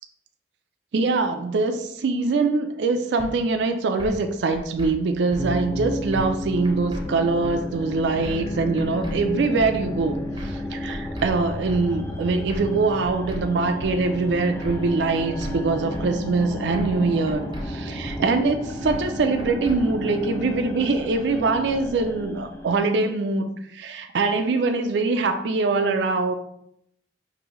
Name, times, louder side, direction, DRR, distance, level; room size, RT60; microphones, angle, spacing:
voice 1, 0.9-26.3, right 3 dB, 80° right, 7 dB, 0.4 m, -23 dB
sound 1, 3.2-3.3 4.0-4.2 4.5-4.9 5.3-5.4 6.1-6.4 6.6-7.0 7.4-7.6 8.2-8.5 8.8-9.2 9.6-9.7 10.4-10.6 10.9-11.3 11.7-11.8 12.5-12.8 13.0-13.4 13.8-13.9 14.6-14.9 15.1-15.5 15.9-16.1 16.7-17.0 17.3-17.7 18.1-18.2 18.9-19.1 19.4-19.8, equal, 25° right, 0.6 m, -35 dB
sound 2, 5.4-22.8, left 1 dB, 15° left, 0.3 m, -32 dB
4.9 x 2.6 x 3.0 m, 0.74 s
head